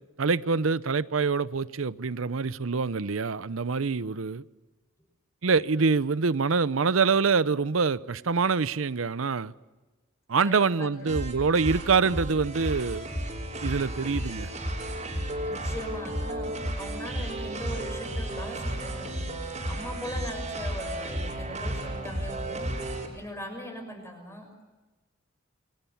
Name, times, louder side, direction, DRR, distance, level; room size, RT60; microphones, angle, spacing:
voice 1, 0.2-4.4 5.4-9.5 10.3-13.1 13.6-14.5, right 5 dB, 85° right, 0.7 m, -25 dB
voice 2, 10.4-10.9 15.4-19.2 19.7-22.7 23.1-24.6, equal, 15° left, 6.0 m, -40 dB
sound 1, 11.1-23.1, right 1 dB, 35° right, 5.5 m, -33 dB
28.5 x 23.5 x 7.2 m
head